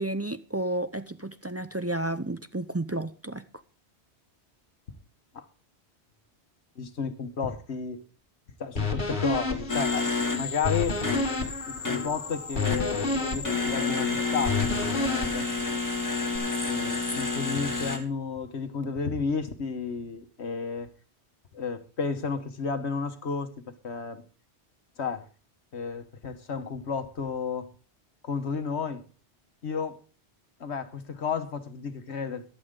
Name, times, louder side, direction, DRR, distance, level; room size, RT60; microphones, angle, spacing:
voice 1, 0.0-3.4, right 1 dB, 25° right, 0.3 m, -31 dB
voice 2, 6.8-8.0 8.6-11.0 11.7-15.5 16.6-20.9 21.5-23.5 23.8-24.2 25.0-25.2 25.7-27.7 28.2-29.0 29.6-30.0 30.6-32.4, left 5 dB, 70° left, 1.5 m, -32 dB
sound 1, 8.8-16.4, left 3 dB, 45° left, 1.9 m, -31 dB
sound 2, 9.7-18.0, left 4 dB, 15° left, 1.9 m, -30 dB
14.5 x 11.5 x 3.8 m
omnidirectional pair, 1.2 m